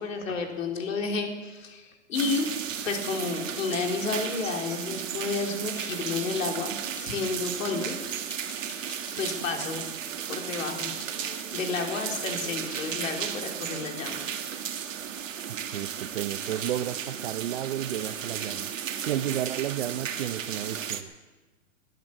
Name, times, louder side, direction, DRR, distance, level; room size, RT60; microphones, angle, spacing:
voice 1, 0.0-2.5 2.8-8.0 9.2-9.8 10.3-11.3 11.5-14.2, left 4 dB, 90° left, 3.4 m, -31 dB
sound 1, 2.1-21.0, right 8 dB, 80° right, 1.8 m, -34 dB
sound 2, 5.8-6.5 6.9-9.4 10.0-10.1 10.4-14.6 14.9-15.3 15.6-15.8 16.2-16.4, left 5 dB, 10° left, 0.4 m, -50 dB
voice 2, 15.7-21.1, right 12 dB, 55° right, 0.7 m, -32 dB
20.0 x 9.4 x 7.3 m
hypercardioid pair, 170°, 38 cm